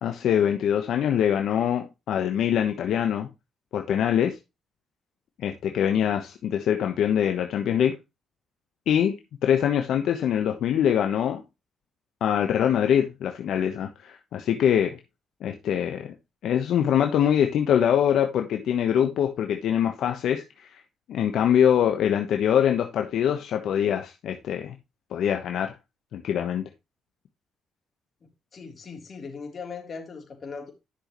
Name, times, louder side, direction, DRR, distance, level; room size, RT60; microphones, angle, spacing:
voice 1, 0.0-3.3 3.7-4.4 5.4-8.0 8.9-9.2 9.4-11.4 12.2-15.0 15.4-16.1 16.4-20.8 21.1-24.8 25.1-25.7 26.1-26.7, left 9 dB, 75° left, 1.1 m, -24 dB
voice 2, 28.5-30.7, left 5 dB, 45° left, 3.4 m, -39 dB
11.5 x 6.3 x 3.1 m
cardioid pair, 90°, 0 cm